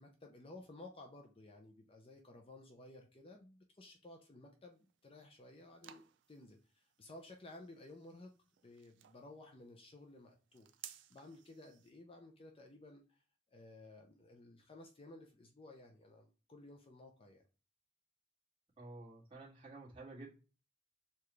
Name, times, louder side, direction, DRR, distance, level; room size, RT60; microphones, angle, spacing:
voice 1, 0.0-8.3 8.6-13.2 13.5-17.4, left 2 dB, 30° left, 3 dB, 0.5 m, -56 dB
sound 1, 4.7-11.9, right 11 dB, 65° right, 0.4 m, -59 dB
voice 2, 18.8-20.3, right 2 dB, 25° right, -5 dB, 1.6 m, -51 dB
6.7 x 2.4 x 3.1 m, 0.35 s
head